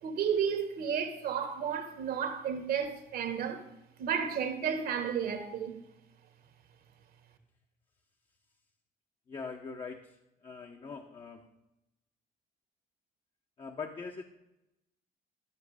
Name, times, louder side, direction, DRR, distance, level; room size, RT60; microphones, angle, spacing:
voice 1, 0.0-3.6 4.0-5.7, right 7 dB, 60° right, 1.5 m, -32 dB
voice 2, 9.3-10.2 10.4-11.4 13.6-14.2, left 5 dB, 30° left, 0.9 m, -42 dB
12.0 x 6.1 x 4.9 m
cardioid pair, 110°, 17 cm